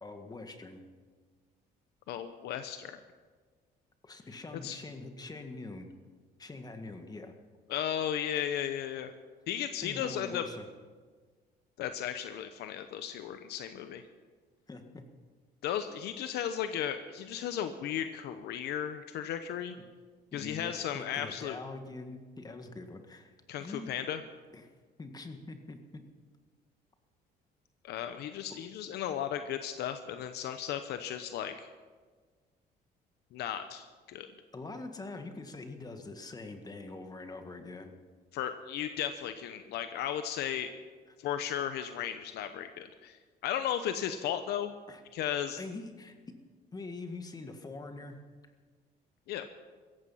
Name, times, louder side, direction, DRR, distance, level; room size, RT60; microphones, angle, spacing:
voice 1, 0.0-0.8 4.0-5.9 6.4-7.3 9.8-10.7 14.7-15.0 20.3-23.3 23.6-23.9 24.5-24.7 25.0-26.1 34.5-37.9 44.9-45.0 45.6-46.4 46.7-48.2, left 3 dB, 25° left, 6 dB, 1.8 m, -44 dB
voice 2, 2.1-3.0 4.6-4.8 7.7-9.1 9.5-10.4 11.8-14.0 15.6-19.8 20.3-21.6 23.5-24.2 27.8-31.7 33.3-34.3 38.3-40.7 41.2-44.7 45.1-45.6 49.3-49.5, left 10 dB, 75° left, 9 dB, 0.9 m, -35 dB
17.0 x 15.0 x 5.7 m, 1.5 s
cardioid pair, 110°, 17 cm